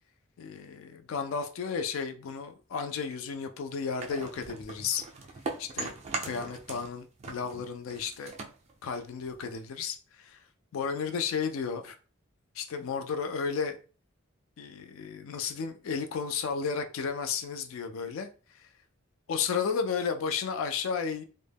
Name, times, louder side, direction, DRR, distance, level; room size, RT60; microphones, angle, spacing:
voice 1, 0.4-5.0 5.6-5.9 6.2-8.3 8.8-10.4 10.7-12.0 12.6-13.8 14.6-18.3 18.5-18.7 19.3-21.2, left 6 dB, 75° left, 0.3 m, -33 dB
sound 1, 4.0-6.9 7.2-9.6, right 3 dB, 30° right, 0.3 m, -40 dB
2.1 x 2.1 x 3.3 m
head